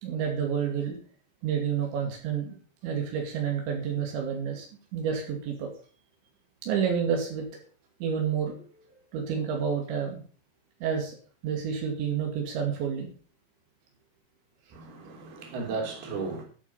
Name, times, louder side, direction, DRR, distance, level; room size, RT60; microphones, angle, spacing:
voice 1, 0.0-1.0 1.4-2.6 2.8-4.7 4.9-5.7 6.6-7.4 8.0-8.6 9.1-10.2 10.8-11.2 11.4-13.1 15.0-15.4, right 7 dB, 85° right, 4.7 m, -29 dB
voice 2, 14.7-16.4, right 4 dB, 60° right, 5.1 m, -35 dB
13.5 x 8.7 x 5.5 m
omnidirectional pair, 5.1 m